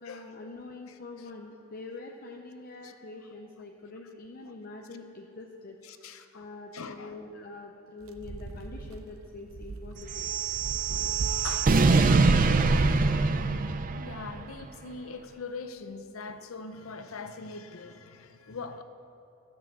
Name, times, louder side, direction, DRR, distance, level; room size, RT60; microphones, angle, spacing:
voice 1, 0.0-5.8 6.3-10.3, left 3 dB, 45° left, 1 dB, 0.6 m, -44 dB
voice 2, 5.8-6.5 6.7-7.2 10.9-11.2 11.4-11.8 13.9-18.8, left 4 dB, 90° left, 9 dB, 0.7 m, -42 dB
sound 1, 8.1-13.0, right 2 dB, 80° right, 0.7 m, -35 dB
sound 2, 10.1-14.4, right 3 dB, 40° right, 0.5 m, -24 dB
12.5 x 6.5 x 7.4 m, 2.8 s
head